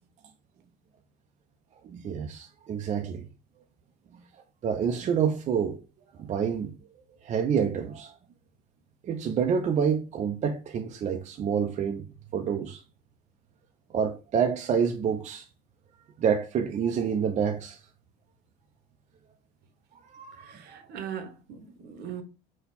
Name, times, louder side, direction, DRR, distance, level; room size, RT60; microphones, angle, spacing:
voice 1, 1.8-3.3 4.6-5.8 6.1-6.7 7.2-8.1 9.0-12.0 12.3-12.8 13.9-15.4 16.2-17.8 20.1-20.8, right 7 dB, 35° right, 0.5 m, -28 dB
voice 2, 20.5-22.2, right 8 dB, 55° right, 0.9 m, -39 dB
4.1 x 2.2 x 4.0 m
supercardioid pair, 100°, 20 cm